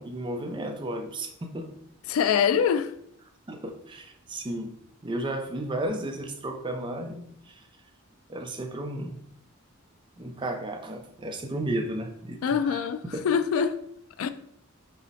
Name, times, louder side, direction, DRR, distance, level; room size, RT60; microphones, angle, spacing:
voice 1, 0.0-1.7 3.5-4.7 5.0-7.7 8.3-9.2 10.2-12.8 13.1-13.3, right 1 dB, 25° right, 0.5 m, -33 dB
voice 2, 2.1-2.9 12.4-13.7 14.2-14.3, left 7 dB, 90° left, 0.3 m, -24 dB
5.5 x 2.1 x 4.1 m
head